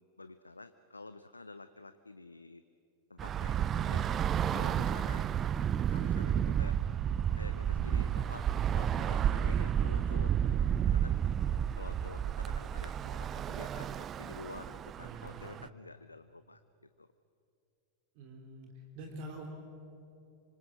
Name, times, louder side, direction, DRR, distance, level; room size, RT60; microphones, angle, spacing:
voice 1, 0.0-2.6 3.1-4.0 4.5-5.6 5.9-6.8 7.4-8.4 8.7-11.2 11.8-16.6 17.0-17.1, left 3 dB, 80° left, 12 dB, 0.7 m, -49 dB
Bus / Traffic noise roadway noise, 3.2-15.7, right 9 dB, 25° right, 0.6 m, -31 dB
voice 2, 15.0-15.6 18.2-19.5, right 2 dB, 45° right, 2 dB, 3.3 m, -46 dB
26.5 x 25.0 x 7.8 m, 2.6 s
figure-of-eight pair, 90°, 0 cm